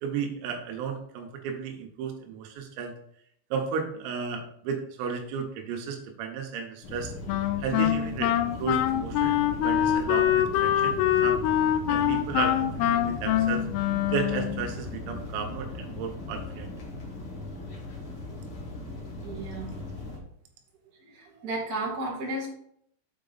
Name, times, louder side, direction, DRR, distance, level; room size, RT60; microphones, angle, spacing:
voice 1, 0.0-3.0 3.5-7.1 7.6-11.4 11.9-16.7, right 6 dB, 85° right, 3 dB, 3.8 m, -34 dB
sound 1, 6.8-20.2, left 2 dB, 65° left, 1.3 m, -38 dB
Wind instrument woodwind instrument, 7.3-14.7, left 11 dB, 85° left, 3.1 m, -25 dB
voice 2, 19.2-19.8 21.0-22.5, right 2 dB, 45° right, -4 dB, 1.1 m, -33 dB
8.0 x 5.1 x 4.0 m, 0.68 s
omnidirectional pair, 5.9 m